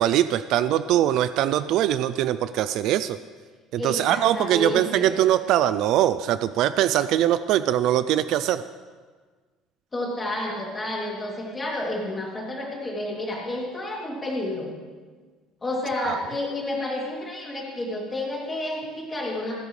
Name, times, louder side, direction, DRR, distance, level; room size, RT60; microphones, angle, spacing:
voice 1, 0.0-3.2 3.7-8.6 16.0-16.2, right 12 dB, 50° right, 13 dB, 0.4 m, -22 dB
voice 2, 3.8-5.1 9.9-14.7 15.6-19.6, left 1 dB, 15° left, -3 dB, 2.8 m, -30 dB
28.0 x 10.5 x 3.3 m, 1.5 s
cardioid pair, 175°, 0 cm